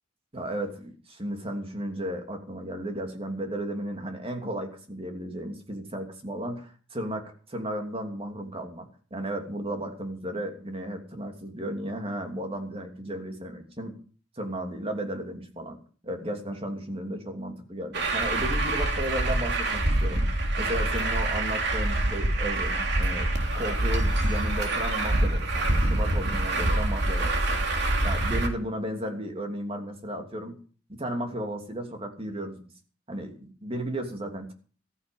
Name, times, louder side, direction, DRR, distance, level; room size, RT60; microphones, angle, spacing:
voice 1, 0.3-13.9 14.4-15.8 16.0-20.3 20.6-23.3 23.5-27.6 28.0-30.6 30.9-32.6 33.1-34.5, right 1 dB, 30° right, 4 dB, 3.0 m, -34 dB
Truck, 17.9-28.5, right 1 dB, 60° right, 3.1 m, -26 dB
15.0 x 14.5 x 5.5 m, 0.41 s
head